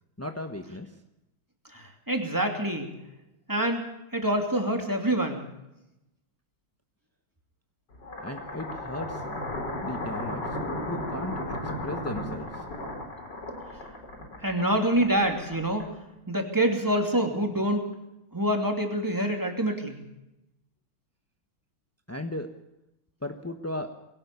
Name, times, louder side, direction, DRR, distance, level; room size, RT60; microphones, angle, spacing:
voice 1, 0.2-0.9 8.2-9.4 9.8-10.4 10.8-12.7 22.1-22.5 23.2-23.9, left 1 dB, 10° left, 5 dB, 0.7 m, -36 dB
voice 2, 1.7-2.9 3.5-3.8 4.1-5.4 14.4-15.9 16.3-17.8 18.3-20.0, right 1 dB, 10° right, 3 dB, 2.9 m, -26 dB
sound 1, 7.9-16.2, left 1 dB, 55° left, 4.7 m, -35 dB
22.0 x 17.5 x 7.0 m, 0.90 s
omnidirectional pair, 2.3 m